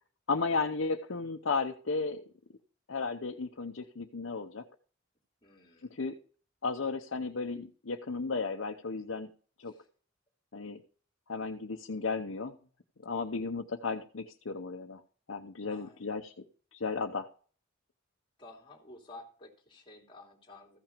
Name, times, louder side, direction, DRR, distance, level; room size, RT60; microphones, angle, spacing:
voice 1, 0.3-2.2 2.9-4.6 5.9-6.2 6.6-9.3 9.6-9.7 10.5-10.8 11.3-12.6 13.0-15.0 15.3-16.4 16.7-17.3, left 4 dB, 85° left, 3 dB, 0.8 m, -34 dB
voice 2, 5.4-6.0 9.6-9.9 15.7-16.3 18.4-20.8, left 2 dB, 25° left, 0 dB, 2.8 m, -53 dB
14.5 x 6.0 x 5.1 m, 0.42 s
head